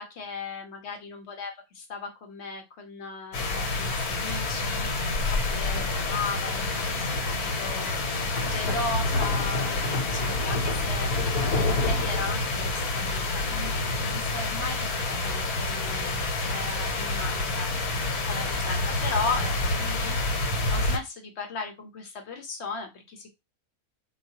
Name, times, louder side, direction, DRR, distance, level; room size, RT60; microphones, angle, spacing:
voice 1, 0.0-11.1 11.5-20.3 20.7-23.3, left 4 dB, 60° left, 5 dB, 0.8 m, -37 dB
sound 1, 3.3-21.0, left 2 dB, 90° left, 1.3 m, -27 dB
3.9 x 2.3 x 2.7 m, 0.23 s
omnidirectional pair, 1.5 m